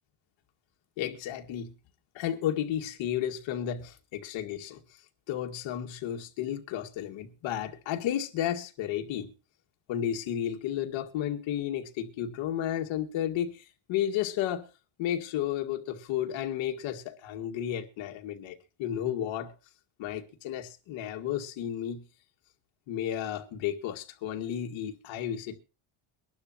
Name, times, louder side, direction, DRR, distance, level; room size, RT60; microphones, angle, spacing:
voice 1, 1.0-1.7 2.1-4.8 5.3-9.3 9.9-14.7 15.0-19.5 20.0-22.0 22.9-25.6, left 10 dB, 65° left, 2.1 m, -32 dB
23.0 x 11.5 x 2.9 m
cardioid pair, 150°, 49 cm